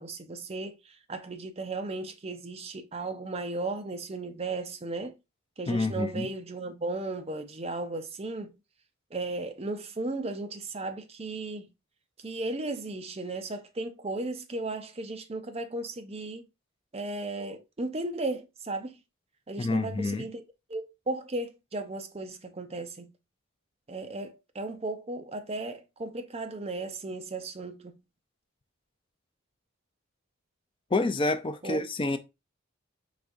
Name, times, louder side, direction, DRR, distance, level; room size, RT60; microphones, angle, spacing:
voice 1, 0.0-5.2 5.6-8.6 9.1-11.7 12.2-16.5 16.9-18.9 19.5-20.4 20.7-23.1 23.9-28.0 31.6-31.8, right 2 dB, 30° right, 0.6 m, -35 dB
voice 2, 5.7-6.3 19.6-20.3 30.9-32.2, left 2 dB, 25° left, 0.4 m, -28 dB
4.9 x 3.5 x 2.6 m
head